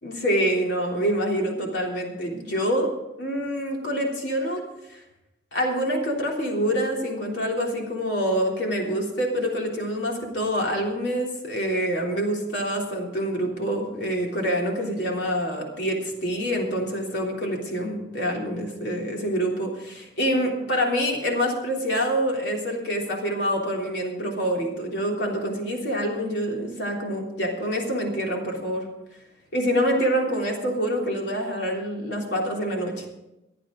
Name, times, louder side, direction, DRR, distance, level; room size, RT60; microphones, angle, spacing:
voice 1, 0.0-2.9 3.2-4.6 4.9-5.0 5.5-28.9 29.5-33.1, equal, 70° left, 0 dB, 3.4 m, -26 dB
24.5 x 8.6 x 3.9 m, 0.93 s
head